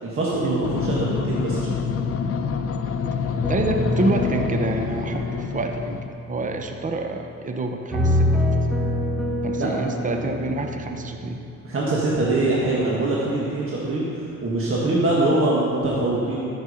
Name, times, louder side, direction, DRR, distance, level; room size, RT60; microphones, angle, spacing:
voice 1, 0.0-1.9 9.6-9.8 11.6-16.5, right 2 dB, 45° right, -5 dB, 1.7 m, -23 dB
sound 1, 0.6-6.1, left 6 dB, 50° left, 0.7 m, -27 dB
sound 2, 3.4-7.5 7.9-13.4 13.8-14.3, left 1 dB, ahead, 1.4 m, -27 dB
voice 2, 3.5-8.7 9.4-11.4, right 2 dB, 25° right, 4 dB, 0.8 m, -28 dB
13.5 x 6.2 x 5.1 m, 2.6 s
cardioid pair, 90°, 30 cm